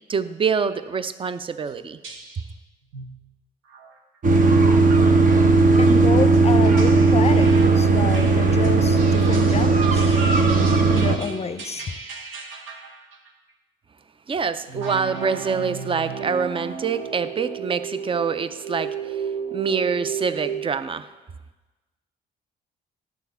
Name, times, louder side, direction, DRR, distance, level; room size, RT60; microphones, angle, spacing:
voice 1, 0.1-2.0 14.3-19.2 19.5-21.1, right 5 dB, 25° right, 13 dB, 0.5 m, -26 dB
sound 1, 1.7-1.8 2.0-2.5 2.9-3.2 3.7-3.9 4.3-4.6 5.3-13.3 14.7-20.7, right 6 dB, 85° right, 1.1 m, -34 dB
sound 2, 4.2-11.2, right 3 dB, 45° right, 0.9 m, -17 dB
voice 2, 5.8-11.9, left 5 dB, 30° left, 10 dB, 0.6 m, -29 dB
11.0 x 4.2 x 6.9 m, 1.2 s
cardioid pair, 90°, 20 cm